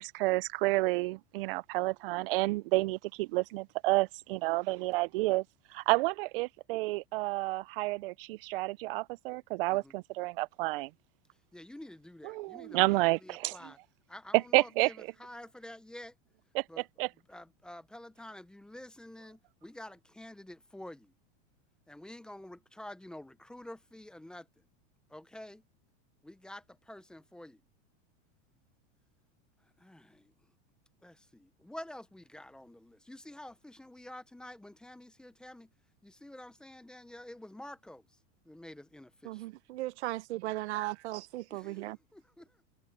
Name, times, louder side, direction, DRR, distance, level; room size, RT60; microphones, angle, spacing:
voice 1, 0.0-5.4 5.7-10.9 12.3-13.6 14.3-14.9 16.6-16.7 17.0-17.1, right 21 dB, 55° right, 0.4 m, -30 dB
voice 2, 11.5-13.8 14.1-16.1 16.7-16.9 17.3-21.1 21.9-24.7 25.1-25.6 26.2-27.6 29.6-30.5 31.0-35.7 36.0-39.4 41.5-42.6, left 1 dB, ahead, 0.5 m, -49 dB
voice 3, 39.2-42.0, right 17 dB, 80° right, 0.9 m, -37 dB
supercardioid pair, 160°, 33 cm